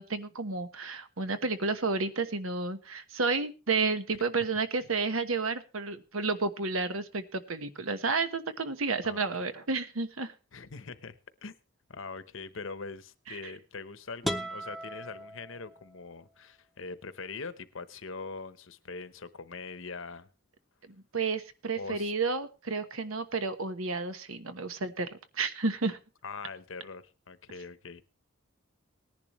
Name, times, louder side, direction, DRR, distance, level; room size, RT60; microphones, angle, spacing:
voice 1, 0.0-10.3 13.3-13.4 21.1-26.0, right 4 dB, 90° right, 1.2 m, -31 dB
voice 2, 10.5-11.2 11.4-11.5 11.9-20.3 21.7-22.1 26.2-28.0, left 4 dB, 70° left, 0.9 m, -42 dB
sound 1, 14.2-16.1, equal, ahead, 0.6 m, -37 dB
19.0 x 10.5 x 3.1 m
head